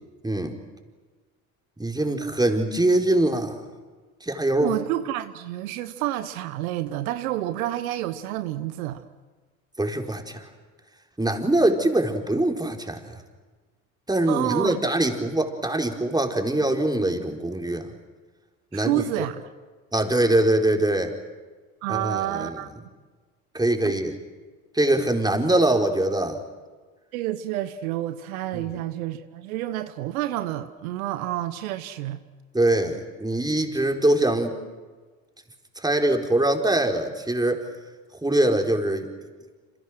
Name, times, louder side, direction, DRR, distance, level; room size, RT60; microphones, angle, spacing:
voice 1, 0.2-0.6 1.8-3.6 4.2-4.7 9.8-10.4 11.2-13.2 14.1-17.9 18.7-19.0 19.9-21.1 21.9-22.5 23.5-24.1 24.7-26.4 28.5-28.7 32.5-34.6 35.8-37.6 38.2-39.1, right 1 dB, 10° right, 3 dB, 4.3 m, -23 dB
voice 2, 4.6-9.1 14.3-14.8 18.7-19.5 21.8-22.7 23.8-23.9 27.1-32.2, right 14 dB, 80° right, 11 dB, 1.2 m, -29 dB
27.5 x 27.5 x 6.4 m, 1.4 s
hypercardioid pair, 65°, 42 cm